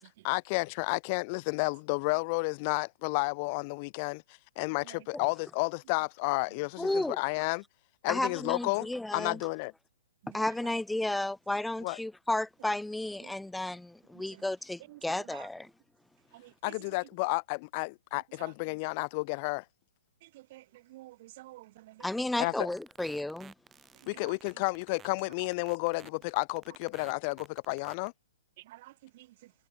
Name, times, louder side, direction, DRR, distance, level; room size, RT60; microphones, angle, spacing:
voice 1, 0.2-4.2 4.6-6.9 7.2-7.6 8.0-9.7 11.8-12.0 16.6-19.6 22.4-22.5 24.1-28.1, left 30 dB, 35° left, 0.3 m, -31 dB
voice 2, 6.8-7.2 8.1-9.4 10.3-15.7 22.0-23.5, left 1 dB, 5° left, 1.1 m, -33 dB
voice 3, 10.2-10.7 13.2-13.3 14.3-14.4 14.9-15.5 16.3-17.1 18.2-18.8 20.2-22.1 22.4-22.6 23.9-24.6 28.6-29.5, right 17 dB, 45° right, 1.1 m, -52 dB
sound 1, 22.7-28.1, right 7 dB, 15° right, 4.9 m, -53 dB
figure-of-eight pair, 120°, 0 cm